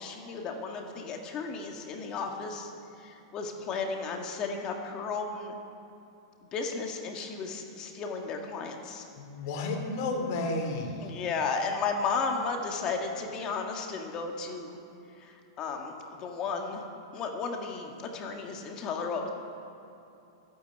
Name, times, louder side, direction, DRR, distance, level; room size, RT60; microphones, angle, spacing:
voice 1, 0.0-2.7 3.0-5.6 6.5-9.1 11.0-14.8 15.2-16.8 17.1-19.3, left 4 dB, 30° left, 2 dB, 1.9 m, -34 dB
voice 2, 9.1-11.1, left 2 dB, 50° left, 1 dB, 3.0 m, -32 dB
13.5 x 9.3 x 9.4 m, 2.8 s
supercardioid pair, 145°, 2 cm